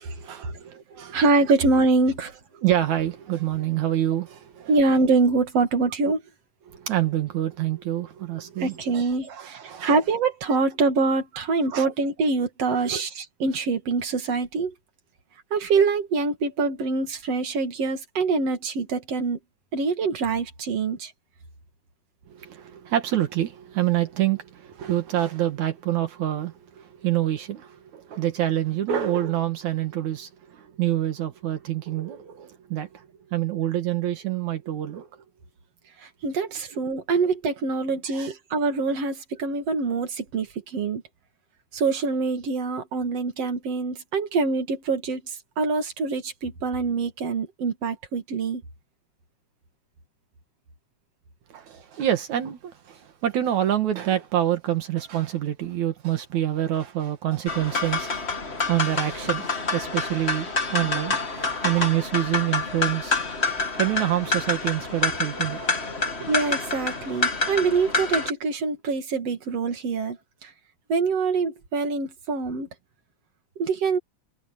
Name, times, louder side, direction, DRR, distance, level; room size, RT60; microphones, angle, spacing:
voice 1, 0.0-1.2 2.6-4.7 6.7-9.9 11.7-11.9 12.8-13.1 22.3-33.1 33.3-35.1 38.1-38.4 51.5-58.3 58.7-63.2 63.6-66.1, right 12 dB, 75° right, 2.9 m, -27 dB
voice 2, 1.1-2.3 4.7-6.2 8.6-14.7 15.5-19.4 19.7-21.1 36.2-40.5 40.7-41.0 41.7-45.2 45.6-48.6 66.3-70.2 70.4-70.5 70.9-72.7 73.6-74.0, right 4 dB, 55° right, 3.2 m, -24 dB
sound 1, 57.5-68.3, left 3 dB, 25° left, 2.1 m, -27 dB
omnidirectional pair, 3.4 m